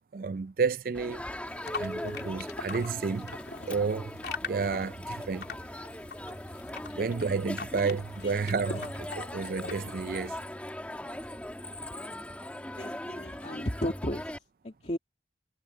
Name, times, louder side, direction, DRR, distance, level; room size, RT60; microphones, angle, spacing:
voice 1, 0.1-1.2 1.8-3.3 3.7-4.1 4.4-5.5 6.9-8.9 9.2-10.4, right 5 dB, 50° right, 0.4 m, -31 dB
Crowd, 0.9-14.4, left 1 dB, 10° left, 1.5 m, -40 dB
sound 1, 1.4-10.5, left 4 dB, 65° left, 3.4 m, -43 dB
voice 2, 12.8-14.3 14.6-15.0, equal, 40° left, 2.5 m, -35 dB
head